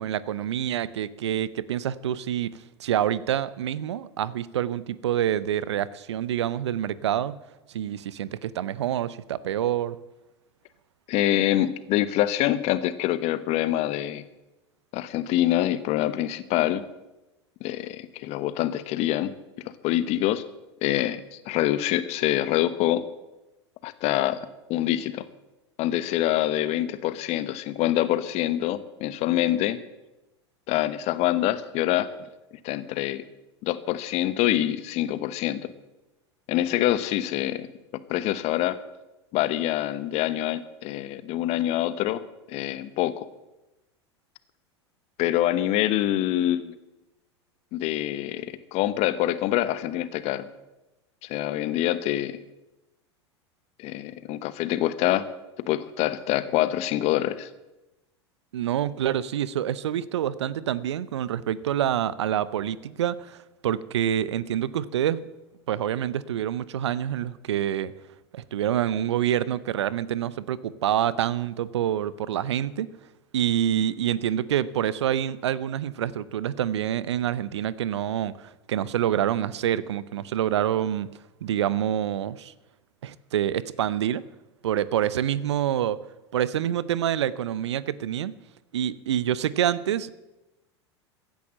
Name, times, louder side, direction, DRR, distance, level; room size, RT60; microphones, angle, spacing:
voice 1, 0.0-7.4 7.7-10.0 58.5-65.2 65.7-68.0 68.3-72.9 73.3-81.1 81.4-82.5 83.0-84.2 84.6-86.0 86.3-88.3 88.7-90.1, right 10 dB, 70° right, 19 dB, 0.7 m, -27 dB
voice 2, 11.1-14.2 14.9-16.8 17.6-19.3 19.8-20.4 20.8-23.0 23.8-24.4 24.7-25.2 25.8-29.8 30.7-32.1 32.6-33.2 33.6-35.7 36.5-37.7 38.1-38.8 39.3-42.2 42.5-43.3 45.2-46.7 47.7-50.5 51.2-52.4 53.8-55.3 55.7-57.5, left 13 dB, 45° left, 14 dB, 1.1 m, -25 dB
15.5 x 10.5 x 7.6 m, 1.0 s
figure-of-eight pair, 85°, 15 cm